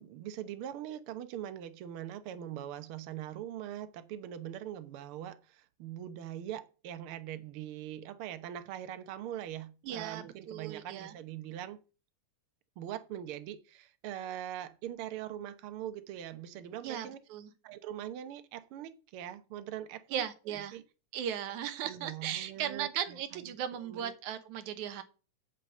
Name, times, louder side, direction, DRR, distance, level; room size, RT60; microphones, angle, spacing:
voice 1, 0.0-11.8 12.8-17.2 17.6-20.8 21.8-24.1, right 11 dB, 65° right, 1.5 m, -42 dB
voice 2, 9.8-11.1 16.8-17.5 20.1-20.8 21.1-25.0, right 10 dB, 80° right, 2.4 m, -37 dB
8.3 x 5.2 x 7.6 m
omnidirectional pair, 3.4 m